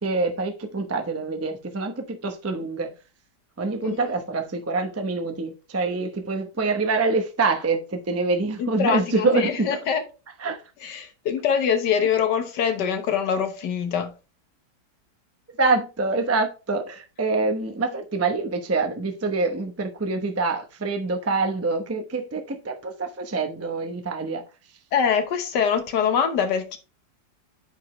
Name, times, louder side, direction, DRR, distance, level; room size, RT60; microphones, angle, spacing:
voice 1, 0.0-2.9 3.6-9.7 10.4-10.6 15.6-24.4, right 3 dB, 20° right, 0.4 m, -25 dB
voice 2, 3.8-4.1 8.6-10.0 10.8-14.1 24.9-26.8, left 7 dB, 70° left, 1.7 m, -24 dB
9.2 x 5.0 x 3.1 m
omnidirectional pair, 2.0 m